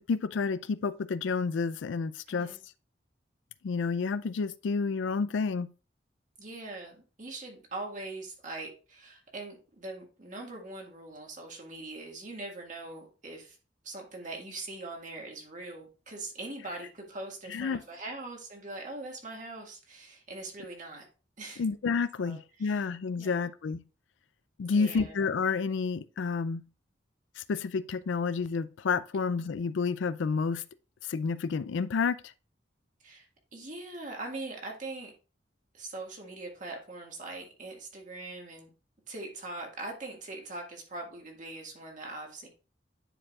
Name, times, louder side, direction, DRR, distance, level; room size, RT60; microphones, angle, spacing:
voice 1, 0.0-2.6 3.6-5.7 17.5-17.8 21.6-23.8 24.6-26.6 27.4-30.6 31.0-32.2, left 5 dB, 85° left, 0.4 m, -30 dB
voice 2, 2.3-2.6 6.4-13.6 13.8-21.1 21.4-21.6 22.2-22.8 23.2-23.5 24.7-25.2 33.0-33.3 33.5-35.1 35.7-38.7 39.1-42.5, right 2 dB, 45° right, 1.8 m, -42 dB
10.0 x 4.7 x 2.4 m
head